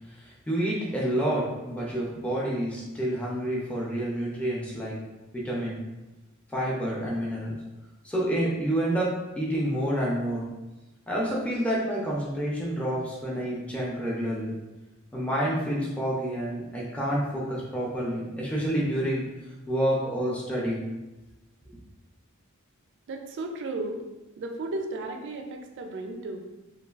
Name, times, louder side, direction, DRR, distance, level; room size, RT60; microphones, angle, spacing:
voice 1, 0.1-5.0 5.3-5.8 6.5-7.5 8.0-10.5 11.1-14.6 15.1-19.2 19.7-20.8, right 1 dB, 5° left, -5 dB, 0.4 m, -28 dB
voice 2, 23.1-24.0 24.4-26.4, right 2 dB, 60° right, 3 dB, 0.4 m, -34 dB
3.1 x 2.2 x 2.3 m, 1.1 s
head